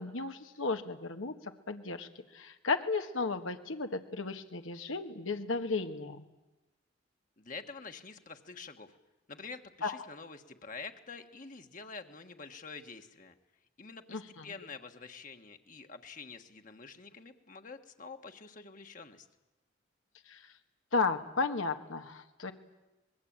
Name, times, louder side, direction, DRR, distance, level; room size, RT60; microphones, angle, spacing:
voice 1, 0.0-6.3 9.8-10.0 14.1-14.5 20.3-20.5 20.9-22.5, left 4 dB, 80° left, 7 dB, 1.5 m, -34 dB
voice 2, 7.4-8.9 9.3-13.3 13.8-19.3, left 4 dB, 40° left, 6 dB, 1.5 m, -47 dB
25.0 x 21.0 x 8.8 m, 1.0 s
head